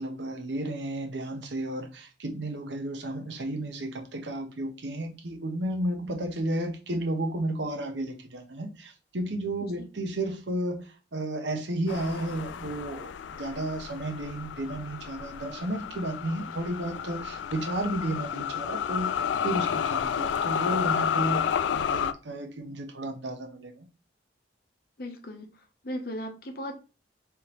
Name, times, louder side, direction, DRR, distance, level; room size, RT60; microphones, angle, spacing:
voice 1, 0.0-19.1 19.4-23.9, right 1 dB, 75° right, 0.9 m, -33 dB
sound 1, 11.9-22.1, left 8 dB, 75° left, 0.3 m, -31 dB
voice 2, 25.0-26.8, equal, 55° left, 0.8 m, -38 dB
4.6 x 3.4 x 3.0 m
head